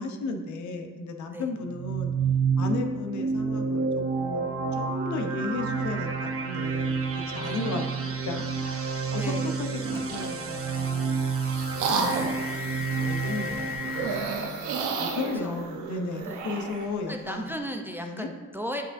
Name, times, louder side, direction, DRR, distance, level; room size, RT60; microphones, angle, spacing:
voice 1, 0.0-2.1 2.6-7.8 8.2-11.6 11.9-12.5 12.9-17.5 18.0-18.3, left 3 dB, 70° left, 5 dB, 0.8 m, -35 dB
sound 1, 1.7-14.2, right 5 dB, 45° right, 1.0 m, -29 dB
voice 2, 9.1-9.6 15.2-15.6 16.3-16.4 17.1-18.8, equal, 5° right, 3 dB, 0.5 m, -36 dB
sound 2, 9.3-15.5, left 4 dB, 30° left, 1.7 m, -40 dB
sound 3, 9.7-10.4 11.0-12.5 13.8-16.9, right 4 dB, 90° right, 0.8 m, -31 dB
8.8 x 4.8 x 2.6 m, 1.4 s
cardioid pair, 90°, 30 cm